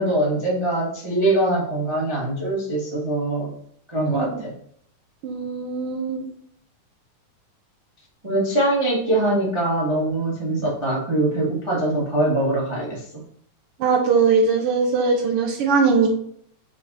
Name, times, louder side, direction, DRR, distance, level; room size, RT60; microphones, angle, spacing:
voice 1, 0.0-3.5 3.9-4.5 8.2-13.0, right 1 dB, 20° right, -5 dB, 0.8 m, -22 dB
voice 2, 4.0-4.4 5.2-6.3 13.8-16.2, right 4 dB, 85° right, 1 dB, 1.2 m, -20 dB
6.4 x 4.1 x 4.2 m, 0.63 s
omnidirectional pair, 3.6 m